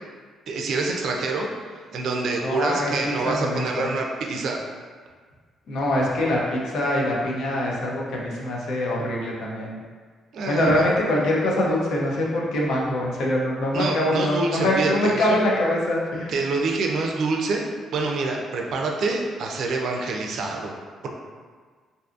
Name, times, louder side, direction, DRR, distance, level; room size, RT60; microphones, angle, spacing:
voice 1, 0.5-1.5 1.9-4.6 10.3-10.9 13.7-15.4 16.3-20.7 21.0-21.1, right 3 dB, 70° right, 1 dB, 0.4 m, -26 dB
voice 2, 2.4-3.9 5.7-9.8 10.5-16.3, left 1 dB, 75° left, -3 dB, 0.5 m, -24 dB
2.6 x 2.5 x 2.4 m, 1.6 s
cardioid pair, 90°, 0 cm